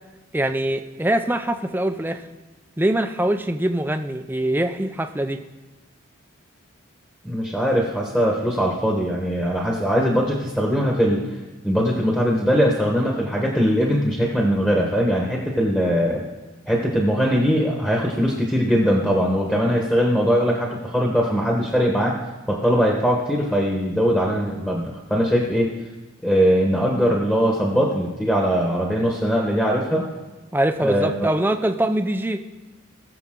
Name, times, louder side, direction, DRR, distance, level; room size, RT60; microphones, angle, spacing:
voice 1, 0.3-2.2 2.8-5.4 30.5-32.4, right 1 dB, 10° right, 7 dB, 0.5 m, -23 dB
voice 2, 7.2-11.3 11.6-16.2 16.7-22.2 22.5-25.7 26.2-30.1 30.8-31.3, equal, 5° left, -2 dB, 1.2 m, -21 dB
20.0 x 7.0 x 3.8 m, 1.2 s
head